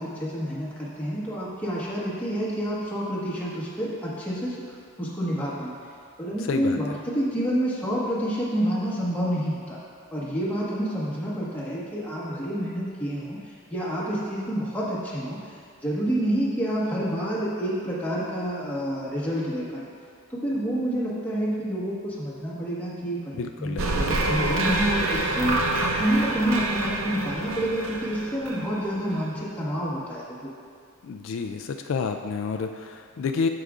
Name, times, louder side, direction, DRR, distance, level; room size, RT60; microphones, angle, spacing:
voice 1, 0.0-5.7 6.2-9.8 10.1-13.4 13.7-15.4 15.8-19.9 20.3-23.3 23.6-30.5, equal, 10° left, -7 dB, 1.3 m, -28 dB
voice 2, 6.4-7.0 23.3-24.0 31.0-33.5, left 5 dB, 65° left, 5 dB, 0.3 m, -30 dB
sound 1, 23.8-29.2, right 2 dB, 80° right, 0.7 m, -27 dB
14.5 x 5.0 x 2.5 m, 2.2 s
head